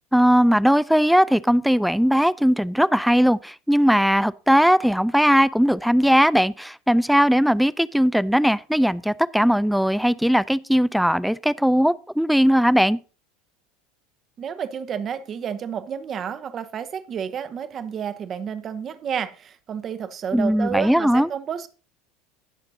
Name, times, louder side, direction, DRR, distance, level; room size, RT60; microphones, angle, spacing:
voice 1, 0.1-13.0 20.3-21.3, equal, ahead, 0.4 m, -19 dB
voice 2, 14.4-21.7, right 8 dB, 35° right, 1.0 m, -30 dB
18.0 x 6.5 x 2.8 m
figure-of-eight pair, 75°, 0 cm